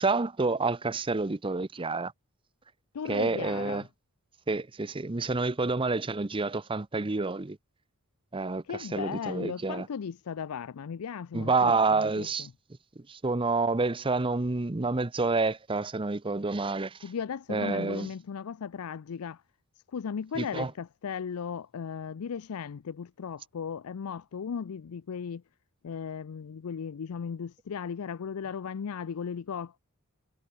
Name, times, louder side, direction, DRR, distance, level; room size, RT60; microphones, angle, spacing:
voice 1, 0.0-2.1 3.1-3.8 4.5-7.6 8.3-8.6 8.9-9.9 11.3-12.5 13.1-17.0 17.5-18.1 20.4-20.7, right 3 dB, 25° right, 0.7 m, -28 dB
voice 2, 2.9-3.9 8.6-12.5 17.0-19.4 19.9-25.4 25.8-29.8, left 6 dB, 80° left, 0.5 m, -36 dB
head